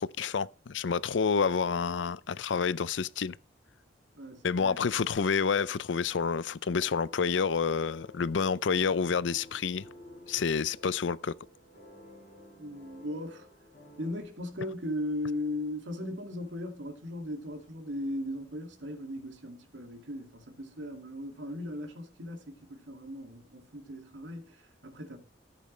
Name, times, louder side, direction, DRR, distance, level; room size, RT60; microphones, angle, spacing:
voice 1, 0.0-3.4 4.4-9.8 10.3-11.3, left 6 dB, 85° left, 0.5 m, -29 dB
voice 2, 4.2-4.9 12.6-13.5 14.0-25.2, left 1 dB, 80° right, 2.3 m, -38 dB
sound 1, 6.7-14.2, left 1 dB, 45° left, 5.3 m, -53 dB
14.0 x 8.5 x 3.2 m
head